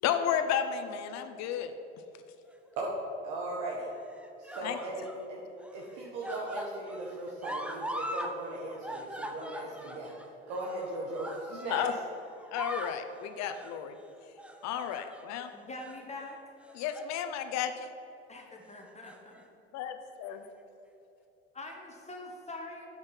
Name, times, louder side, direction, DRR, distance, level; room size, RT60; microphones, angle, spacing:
voice 1, 0.0-1.7 4.6-4.8 11.7-11.9 12.5-14.0 14.6-15.5 16.7-17.9 19.7-20.5, left 9 dB, 60° left, 9 dB, 0.9 m, -32 dB
sound 1, 2.5-3.1 4.0-5.2 5.6-8.3 8.6-12.1 12.4-13.0 13.5-13.8 14.4-15.4 15.8-16.0 16.6-17.1 17.5-17.7 18.8-19.4 20.3-20.4, equal, 5° right, 0.9 m, -41 dB
voice 2, 3.2-3.9 4.4-5.0 5.3-5.4 5.7-10.2 10.5-11.8, right 2 dB, 65° right, -3 dB, 1.7 m, -38 dB
voice 3, 15.5-16.4 18.3-19.4 21.5-22.9, left 2 dB, 20° left, 0 dB, 1.6 m, -44 dB
7.9 x 7.7 x 5.8 m, 2.9 s
supercardioid pair, 85°, 31 cm